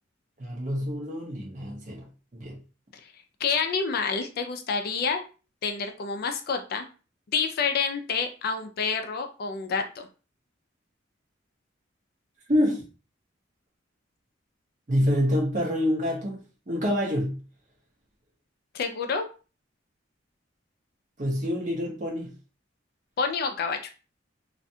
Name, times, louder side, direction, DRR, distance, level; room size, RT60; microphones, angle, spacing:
voice 1, 0.4-2.0 2.3-2.6 12.5-12.8 14.9-16.4 16.7-17.4 21.2-22.3, equal, 40° right, -2 dB, 0.9 m, -26 dB
voice 2, 3.4-5.2 5.6-6.9 7.3-10.1 18.7-19.3 23.2-23.8, left 5 dB, 50° left, 6 dB, 0.3 m, -28 dB
2.4 x 2.2 x 2.7 m, 0.34 s
head